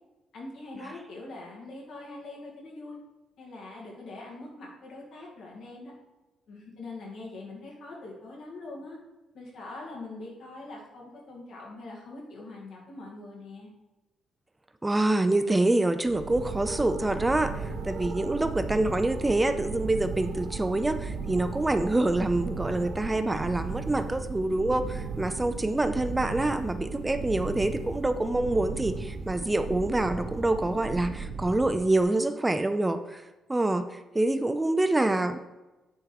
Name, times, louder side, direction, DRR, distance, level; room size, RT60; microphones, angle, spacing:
voice 1, 0.3-3.0 3.4-5.9 6.5-9.0 9.3-13.7, left 2 dB, 70° left, -4 dB, 2.5 m, -43 dB
voice 2, 14.8-33.2 33.5-35.4, right 2 dB, 15° right, 9 dB, 0.4 m, -26 dB
sound 1, 16.0-32.0, right 4 dB, 75° right, 1.1 m, -36 dB
9.7 x 3.6 x 4.7 m, 1.1 s
cardioid pair, 90°, 0 cm